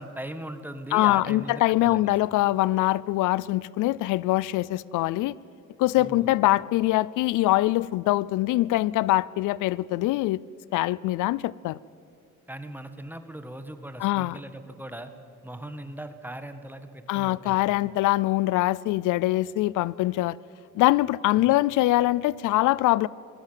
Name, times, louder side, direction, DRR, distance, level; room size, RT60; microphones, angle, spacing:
voice 1, 0.0-2.2 6.0-6.4 12.5-15.1 15.4-17.6 21.3-21.6, right 1 dB, 5° right, 1.6 m, -39 dB
voice 2, 0.9-5.4 5.8-10.4 10.7-11.8 14.0-14.4 17.1-20.4 20.7-23.1, left 17 dB, 85° left, 0.5 m, -23 dB
20.0 x 15.5 x 9.1 m
cardioid pair, 90°, 30 cm